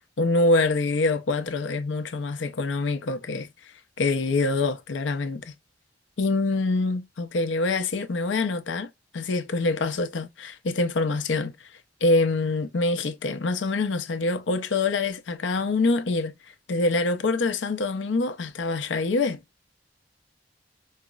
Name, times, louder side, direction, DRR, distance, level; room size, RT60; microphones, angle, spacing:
voice 1, 0.2-3.5 4.0-5.5 6.2-8.9 9.1-11.7 12.0-16.4 16.7-19.4, left 3 dB, 90° left, 0.6 m, -25 dB
4.7 x 2.0 x 2.3 m
head